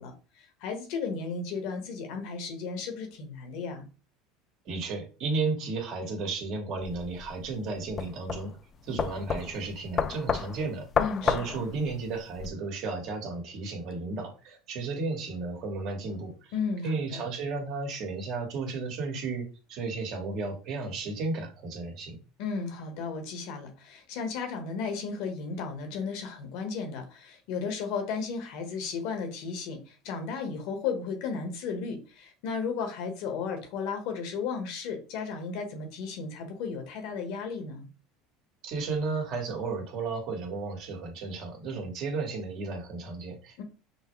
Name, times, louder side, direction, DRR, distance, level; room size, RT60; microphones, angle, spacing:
voice 1, 0.0-3.9 11.0-11.3 16.5-17.2 22.4-37.9 43.6-43.7, left 5 dB, 70° left, 5 dB, 1.3 m, -34 dB
voice 2, 4.6-8.5 8.8-10.9 11.2-16.5 16.8-22.2 38.6-43.6, right 3 dB, 55° right, 2 dB, 1.6 m, -33 dB
sound 1, 6.8-12.5, left 6 dB, 35° left, 0.3 m, -31 dB
5.6 x 2.1 x 3.2 m, 0.34 s
supercardioid pair, 110°, 0 cm